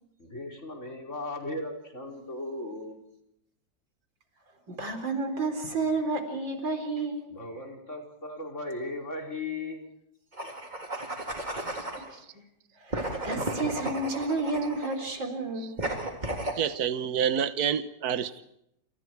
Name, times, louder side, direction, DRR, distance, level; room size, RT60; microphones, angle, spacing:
voice 1, 0.2-3.0 7.3-9.8, left 2 dB, 40° left, 1 dB, 5.3 m, -37 dB
voice 2, 4.7-7.3 11.6-12.4 12.8-15.8, right 3 dB, 80° right, 7 dB, 4.6 m, -31 dB
sound 1, 10.3-12.1 12.9-15.1 15.8-16.6, right 1 dB, 25° right, 3.5 m, -34 dB
voice 3, 16.5-18.4, right 8 dB, 55° right, 12 dB, 1.6 m, -28 dB
29.0 x 28.5 x 4.8 m, 0.77 s
omnidirectional pair, 2.0 m